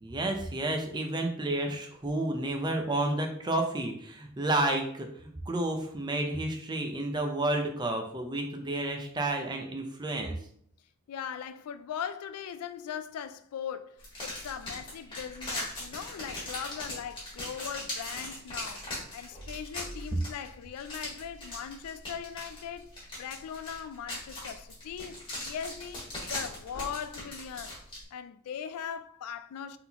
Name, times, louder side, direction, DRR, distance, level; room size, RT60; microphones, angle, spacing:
voice 1, 0.0-10.4, right 2 dB, 20° right, 0.6 m, -31 dB
voice 2, 11.1-22.9 23.2-27.8 28.1-29.8, left 8 dB, 85° left, 0.3 m, -40 dB
sound 1, 14.0-28.0, left 1 dB, 25° left, 1.8 m, -40 dB
sound 2, 23.8-24.7 26.3-27.6, equal, 75° right, 1.7 m, -51 dB
3.9 x 3.8 x 2.9 m
head